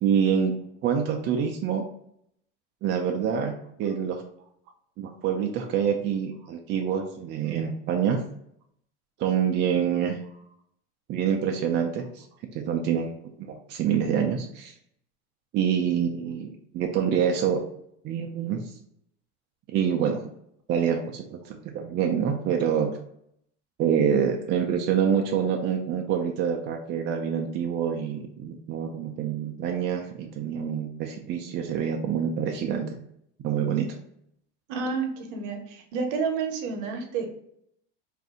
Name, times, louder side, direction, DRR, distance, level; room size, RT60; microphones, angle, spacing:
voice 1, 0.0-0.5 0.8-1.8 2.8-3.5 3.8-4.2 5.0-8.2 9.2-10.2 11.1-12.3 12.5-13.1 13.4-14.7 15.5-17.6 18.0-18.6 19.7-20.3 20.7-22.9 23.8-32.9 33.4-33.9, right 8 dB, 30° right, 2 dB, 0.4 m, -26 dB
voice 2, 34.7-37.3, right 5 dB, 60° right, 4 dB, 0.8 m, -30 dB
2.6 x 2.4 x 3.6 m, 0.72 s
supercardioid pair, 110°, 35 cm